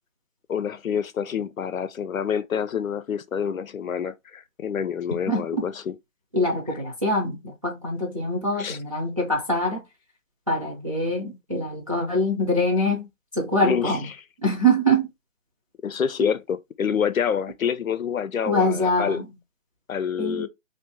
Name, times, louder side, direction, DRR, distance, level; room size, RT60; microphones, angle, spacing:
voice 1, 0.5-6.0 8.6-8.8 13.6-14.0 15.8-19.2 19.9-20.5, left 7 dB, 90° left, 0.6 m, -27 dB
voice 2, 5.3-5.7 6.3-9.8 10.5-13.1 13.3-14.1 14.4-15.1 16.2-16.3 18.5-19.3 20.2-20.5, equal, 25° right, 0.5 m, -24 dB
2.6 x 2.5 x 3.5 m
figure-of-eight pair, 155°, 40 cm